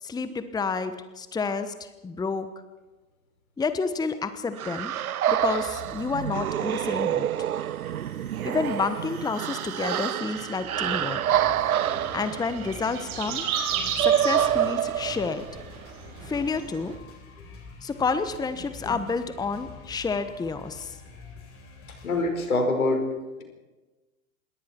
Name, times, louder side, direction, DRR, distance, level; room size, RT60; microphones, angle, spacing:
voice 1, 0.0-2.5 3.6-4.9 5.3-7.3 8.4-11.2 12.1-13.5 14.0-15.5 16.2-16.9 17.8-21.0, left 4 dB, 10° left, 11 dB, 1.2 m, -29 dB
sound 1, 4.6-15.6, right 11 dB, 80° right, 0.6 m, -27 dB
sound 2, 5.4-6.4 6.7-22.2, left 4 dB, 30° left, 7.2 m, -48 dB
sound 3, 10.8-17.0, right 7 dB, 45° right, 5.3 m, -35 dB
voice 2, 22.0-23.1, left 2 dB, 75° left, 5 dB, 5.3 m, -26 dB
27.0 x 21.5 x 4.6 m, 1.2 s
figure-of-eight pair, 95°, 43 cm